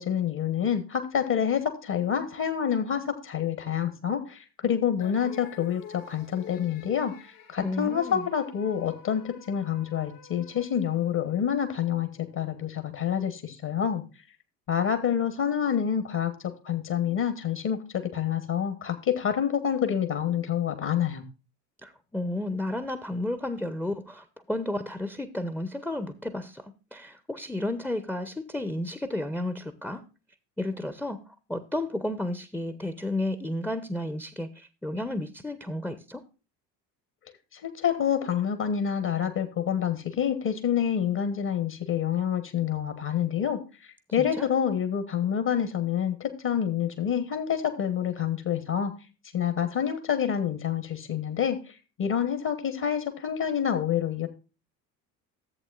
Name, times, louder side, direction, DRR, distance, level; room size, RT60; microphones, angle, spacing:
voice 1, 0.0-7.1 7.5-12.1 12.3-14.0 14.7-16.3 16.6-17.8 18.1-21.2 37.5-48.9 49.3-54.3, left 8 dB, 40° left, 8 dB, 1.4 m, -27 dB
sound 1, 5.0-11.5, left 7 dB, 65° left, 2.5 m, -49 dB
voice 2, 7.6-8.3 21.8-30.0 30.6-36.2 44.2-44.5, left 1 dB, 5° left, 11 dB, 0.9 m, -32 dB
14.5 x 7.9 x 2.4 m, 0.31 s
figure-of-eight pair, 60°, 50 cm